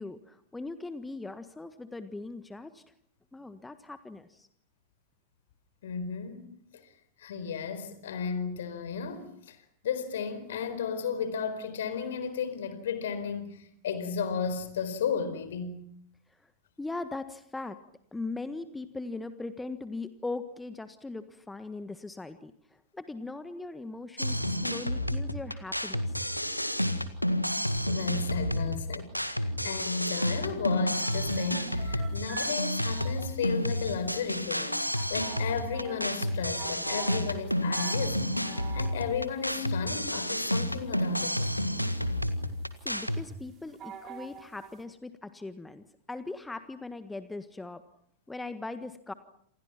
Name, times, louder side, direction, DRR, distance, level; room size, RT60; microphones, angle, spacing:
voice 1, 0.0-2.8 3.3-4.5 16.4-16.5 16.8-17.8 18.1-26.3 31.3-31.5 42.8-47.8 48.3-49.1, left 3 dB, 10° left, 1.5 m, -40 dB
voice 2, 5.8-6.8 7.2-9.6 9.8-15.8 27.9-34.8 35.1-38.3 38.7-41.5, left 6 dB, 60° left, 4.4 m, -34 dB
sound 1, 24.2-43.2, equal, 90° left, 1.8 m, -30 dB
sound 2, 31.0-44.8, right 8 dB, 30° right, 4.8 m, -47 dB
28.5 x 28.0 x 6.0 m
figure-of-eight pair, 90°, 0 cm